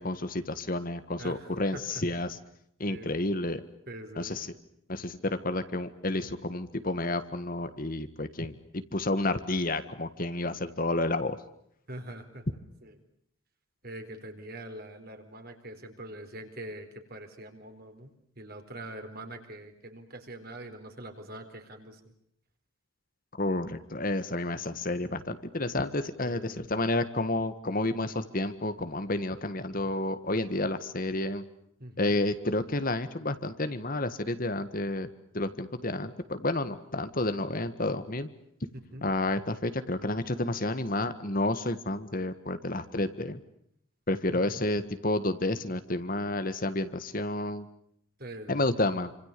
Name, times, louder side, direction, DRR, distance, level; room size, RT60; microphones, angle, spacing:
voice 1, 0.0-2.4 2.8-3.6 4.2-4.5 4.9-11.4 23.4-31.4 32.0-35.1 35.3-38.3 39.0-43.4 44.1-47.7 48.5-49.1, left 2 dB, 40° left, 11 dB, 1.6 m, -30 dB
voice 2, 1.2-1.8 2.9-3.3 3.9-4.4 11.9-12.4 12.8-12.9 13.8-22.0 26.2-26.6 31.8-32.1 38.9-39.0 44.3-44.6 48.2-48.6, right 1 dB, 45° right, 6 dB, 4.4 m, -44 dB
28.0 x 26.5 x 6.8 m, 0.72 s
head